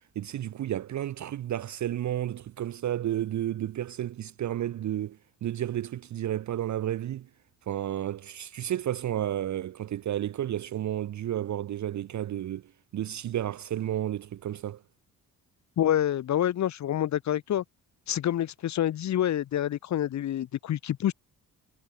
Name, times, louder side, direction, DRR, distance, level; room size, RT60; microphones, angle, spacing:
voice 1, 0.2-7.3 7.7-12.6 12.9-14.8, right 12 dB, 50° right, 0.5 m, -32 dB
voice 2, 15.8-17.6 18.1-21.1, left 11 dB, 50° left, 0.5 m, -27 dB
cardioid pair, 100°, 38 cm